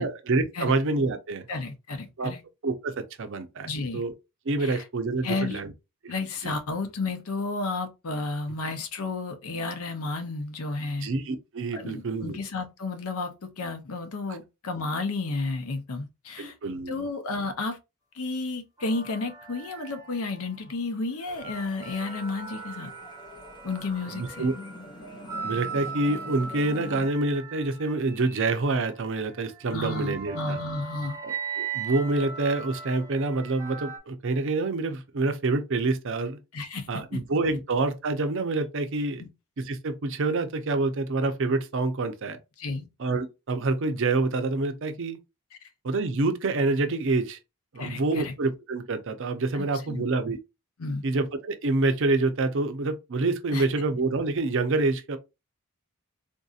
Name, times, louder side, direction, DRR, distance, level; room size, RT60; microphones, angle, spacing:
voice 1, 0.0-1.5 2.2-2.3 2.6-4.1 4.5-5.7 6.0-6.1 6.4-6.5 11.0-12.4 16.4-17.0 24.1-24.5 25.4-30.6 31.2-36.4 36.9-39.2 39.6-42.4 43.0-45.2 45.8-47.4 47.7-50.4 51.0-55.2, right 3 dB, 60° right, 0.6 m, -27 dB
voice 2, 1.5-2.4 3.6-4.0 4.6-4.8 5.2-5.6 6.1-11.1 11.7-16.6 16.9-17.8 18.1-22.9 23.6-24.5 29.7-31.2 36.5-37.2 39.2-39.3 42.6-42.9 45.6-45.7 47.8-48.3 49.5-50.0 50.8-51.0 53.5-53.7, left 3 dB, 75° left, 0.7 m, -32 dB
sound 1, 18.8-20.7 21.2-34.0, right 5 dB, 15° right, 0.7 m, -39 dB
sound 2, 21.3-27.1, left 2 dB, 20° left, 0.5 m, -44 dB
3.7 x 2.7 x 2.4 m
head